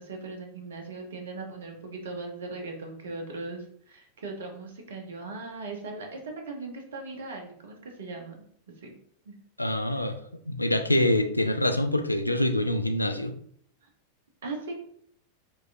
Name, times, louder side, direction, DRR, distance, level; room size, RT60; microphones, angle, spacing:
voice 1, 0.0-8.4 8.8-8.9 9.2-9.3 9.9-10.0 13.8-13.9 14.4-14.7, right 3 dB, 65° right, 3 dB, 0.9 m, -39 dB
voice 2, 9.6-10.2 10.5-13.3, left 1 dB, 85° left, 8 dB, 0.3 m, -25 dB
4.5 x 3.1 x 2.5 m, 0.64 s
figure-of-eight pair, 90°, 0 cm